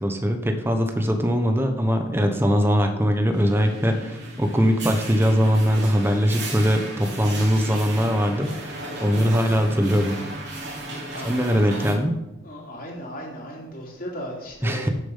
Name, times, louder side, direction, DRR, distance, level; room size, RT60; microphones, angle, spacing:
voice 1, 0.0-10.2 11.2-12.1 14.6-14.9, equal, 10° right, 5 dB, 1.1 m, -21 dB
sound 1, 3.3-11.9, right 1 dB, 55° right, 3.2 m, -35 dB
voice 2, 11.1-11.8 12.4-14.9, equal, 45° left, -2 dB, 3.3 m, -36 dB
12.0 x 7.0 x 5.6 m, 0.94 s
head